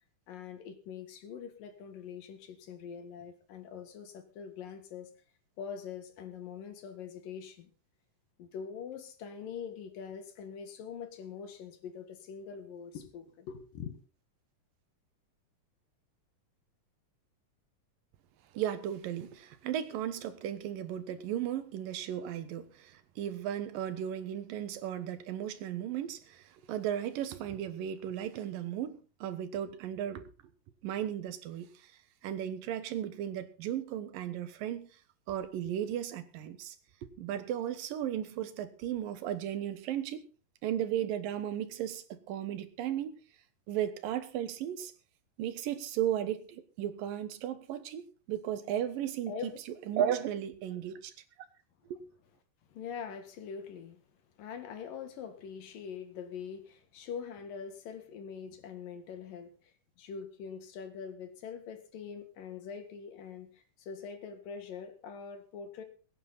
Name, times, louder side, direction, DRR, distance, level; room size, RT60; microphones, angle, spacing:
voice 1, 0.3-5.1 5.6-7.7 8.4-14.0 49.3-49.6 52.7-54.0 54.4-59.7 60.0-65.8, left 7 dB, 80° left, 3.5 m, -43 dB
voice 2, 18.5-30.3 30.8-31.9 32.2-34.9 35.3-36.8 37.0-40.3 40.6-43.2 43.7-44.9 45.4-49.5 49.9-51.1 51.9-52.0, right 10 dB, 90° right, 2.9 m, -35 dB
22.5 x 9.4 x 4.1 m
omnidirectional pair, 3.8 m